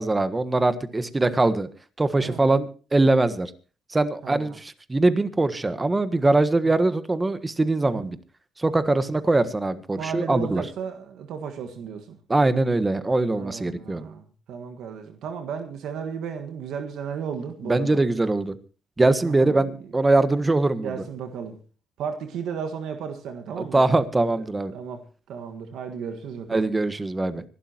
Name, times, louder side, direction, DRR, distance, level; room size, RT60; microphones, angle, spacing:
voice 1, 0.0-1.7 2.0-3.5 3.9-8.2 8.6-10.6 12.3-14.1 17.7-18.5 19.0-20.9 23.6-24.7 26.5-27.4, right 2 dB, 20° right, 1.4 m, -22 dB
voice 2, 2.2-2.5 4.2-4.6 6.6-6.9 7.8-8.1 10.0-12.2 13.3-18.0 19.2-19.8 20.8-21.6 22.0-23.8 24.7-26.7, right 7 dB, 80° right, 1.6 m, -34 dB
25.5 x 12.0 x 2.9 m
cardioid pair, 90°, 0 cm